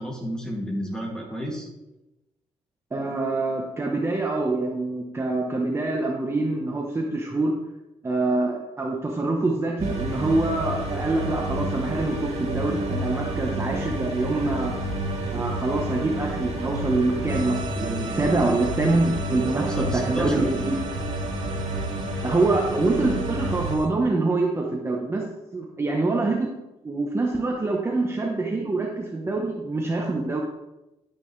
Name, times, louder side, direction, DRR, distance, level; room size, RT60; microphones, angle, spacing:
voice 1, 0.0-1.7 19.5-20.4, equal, 5° left, -1 dB, 2.6 m, -31 dB
voice 2, 2.9-7.5 8.0-14.7 15.3-20.8 22.2-26.5 26.8-30.4, right 2 dB, 20° right, 0 dB, 1.1 m, -25 dB
sound 1, 9.8-23.7, right 1 dB, 70° right, 3.9 m, -30 dB
sound 2, 17.3-23.9, right 1 dB, 40° right, 1.8 m, -40 dB
11.0 x 9.0 x 3.3 m, 0.98 s
cardioid pair, 120°, 12 cm